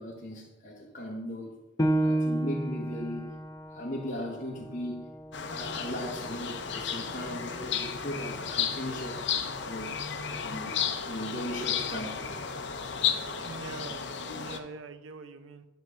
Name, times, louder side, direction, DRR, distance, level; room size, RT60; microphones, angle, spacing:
voice 1, 0.0-1.6 2.0-3.3 3.7-5.1 5.5-9.2 9.6-10.0 10.4-12.2, equal, 40° left, -3 dB, 1.1 m, -37 dB
Piano, 1.8-7.0 7.4-7.5 8.1-8.6, right 1 dB, 20° left, 0.5 m, -32 dB
sound 1, 5.3-14.6, left 7 dB, 55° left, 0.7 m, -33 dB
voice 2, 13.4-14.0 14.3-15.6, right 3 dB, 75° right, 11 dB, 0.6 m, -43 dB
9.0 x 3.5 x 6.4 m, 1.1 s
head